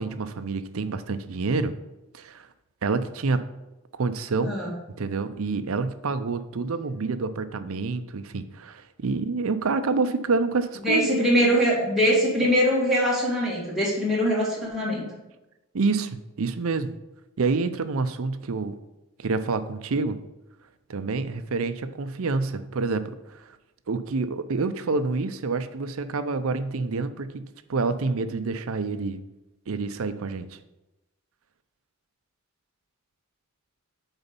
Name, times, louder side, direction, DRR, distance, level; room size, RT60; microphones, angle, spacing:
voice 1, 0.0-1.7 2.1-2.5 2.8-3.5 3.9-4.5 5.0-11.1 15.7-16.9 17.4-18.8 19.2-20.2 20.9-23.5 23.9-29.2 29.7-30.5, right 4 dB, 70° right, 12 dB, 0.5 m, -27 dB
voice 2, 4.4-4.7 10.8-15.1, equal, ahead, -7 dB, 2.2 m, -22 dB
8.1 x 4.0 x 5.3 m, 1.0 s
head